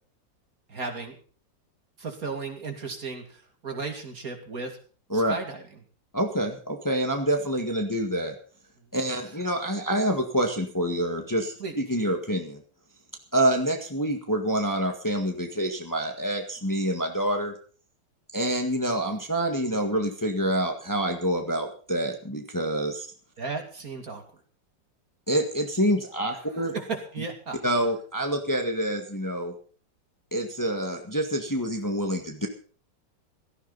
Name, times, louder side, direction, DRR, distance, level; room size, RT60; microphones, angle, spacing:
voice 1, 0.7-1.2 2.0-4.8 5.1-5.6 11.6-11.8 23.4-24.2 26.4-27.6, right 4 dB, 50° right, 4 dB, 2.8 m, -35 dB
voice 2, 6.1-8.3 8.9-12.6 13.3-17.5 18.3-23.1 25.3-26.7 27.6-29.5 30.3-32.5, right 1 dB, 10° left, 3 dB, 1.7 m, -27 dB
16.5 x 14.5 x 4.1 m, 0.41 s
omnidirectional pair, 2.0 m